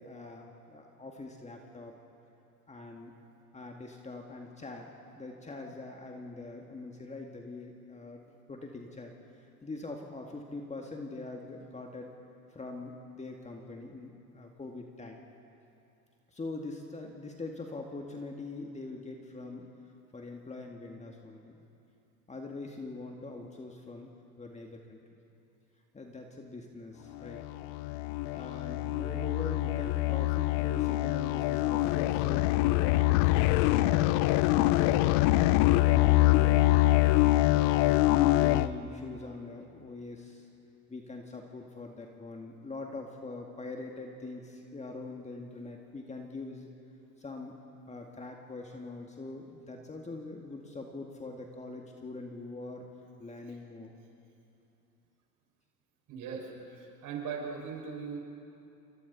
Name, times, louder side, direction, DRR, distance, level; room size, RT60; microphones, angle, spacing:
voice 1, 0.0-1.9 2.7-3.1 3.5-9.1 9.6-12.1 12.5-15.2 16.3-19.7 20.1-21.6 22.3-24.1 24.4-25.0 25.9-27.4 28.1-34.0 34.5-37.9 38.4-40.5 40.9-46.7 47.2-47.6 47.9-52.9 53.2-53.9, left 3 dB, 15° left, 2 dB, 2.1 m, -43 dB
sound 1, 27.3-38.7, left 17 dB, 50° left, 0.8 m, -25 dB
voice 2, 56.1-58.2, right 6 dB, 45° right, 0 dB, 6.2 m, -39 dB
28.0 x 24.0 x 4.2 m, 2.7 s
hypercardioid pair, 85°, 45 cm